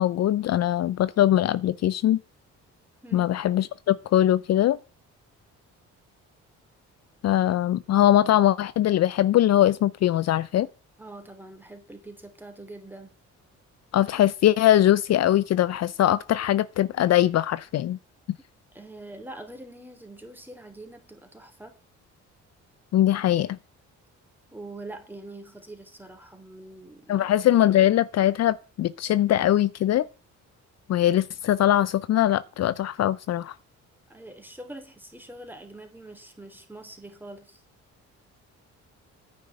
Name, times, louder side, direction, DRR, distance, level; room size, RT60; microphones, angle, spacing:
voice 1, 0.0-2.2 3.1-4.8 7.2-10.7 13.9-18.0 22.9-23.6 27.1-30.1 30.9-33.5, left 12 dB, 60° left, 0.5 m, -21 dB
voice 2, 11.0-13.1 18.7-21.8 24.5-27.3 34.1-37.6, right 2 dB, 5° right, 3.0 m, -44 dB
9.9 x 6.3 x 7.6 m
cardioid pair, 90°, 30 cm